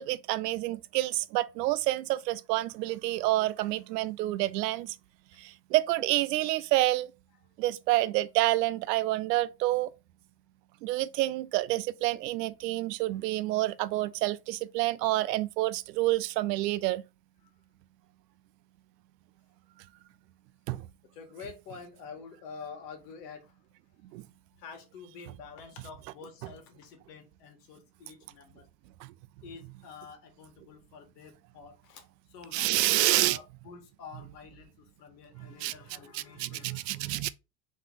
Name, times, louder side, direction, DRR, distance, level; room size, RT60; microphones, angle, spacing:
voice 1, 0.0-4.9 5.4-7.1 7.6-9.9 10.8-17.0 20.7-20.8 24.1-24.2 32.5-33.4 35.6-35.7 36.1-37.3, right 17 dB, 85° right, 0.6 m, -28 dB
voice 2, 21.1-23.5 24.6-28.7 29.4-32.0 32.3-37.3, left 5 dB, 80° left, 1.7 m, -48 dB
3.8 x 3.1 x 3.8 m
supercardioid pair, 140°, 48 cm